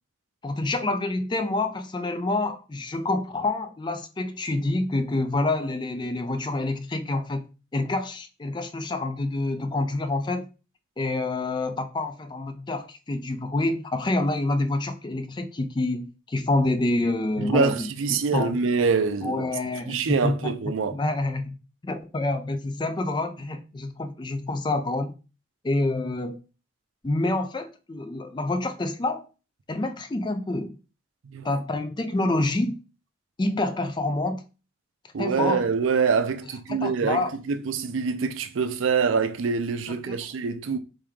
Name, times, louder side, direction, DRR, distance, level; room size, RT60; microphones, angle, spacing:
voice 1, 0.4-7.4 7.7-10.5 11.0-18.6 19.2-20.5 20.9-21.6 21.8-25.1 25.6-26.4 27.0-29.2 29.7-30.8 31.4-32.8 33.4-34.4 35.2-35.7 36.7-37.3 40.1-40.2, left 2 dB, 20° left, 0.4 m, -27 dB
voice 2, 17.4-19.5 19.9-21.0 31.2-31.6 35.1-40.8, right 5 dB, 80° right, 0.4 m, -25 dB
3.4 x 3.3 x 3.5 m
head